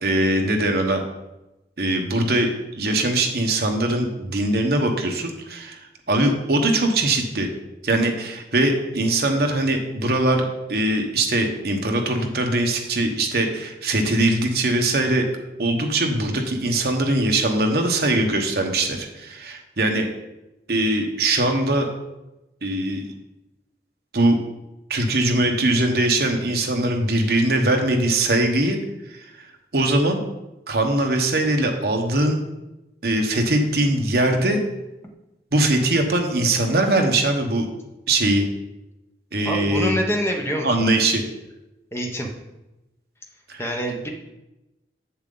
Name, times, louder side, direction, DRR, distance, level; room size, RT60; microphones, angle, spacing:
voice 1, 0.0-1.0 1.8-5.8 6.1-7.5 7.8-15.3 15.6-20.1 20.7-21.9 22.6-23.1 24.1-24.4 24.9-28.8 29.1-29.2 29.7-30.2 30.7-32.4 33.0-34.6 35.5-37.7 38.1-38.4 39.3-40.0 40.6-41.2 43.5-43.6, right 1 dB, 55° right, 3 dB, 1.1 m, -21 dB
voice 2, 39.4-40.9 41.9-42.3 43.6-44.1, equal, 15° left, 1 dB, 1.0 m, -26 dB
7.4 x 7.2 x 3.9 m, 0.97 s
head